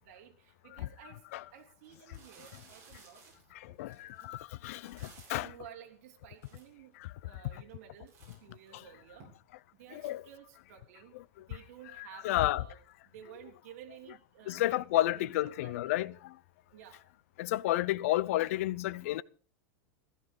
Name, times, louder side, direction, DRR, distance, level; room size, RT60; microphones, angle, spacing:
voice 1, 0.0-1.2 1.5-3.2 3.6-4.3 5.4-6.9 7.2-8.2 8.4-9.3 9.7-11.1 11.5-12.8 13.1-16.0 16.7-17.1, right 9 dB, 55° right, 3.5 m, -53 dB
sound 1, 1.2-1.4 1.8-5.6 6.1-6.2 6.4-7.1 7.6-9.2, right 5 dB, 30° right, 7.9 m, -58 dB
voice 2, 3.8-5.0 5.3-5.5 8.7-8.8 9.9-10.2 11.1-11.2 12.0-12.6 14.5-16.2 17.4-19.2, left 15 dB, 60° left, 0.6 m, -31 dB
15.5 x 14.0 x 5.2 m
supercardioid pair, 170°, 9 cm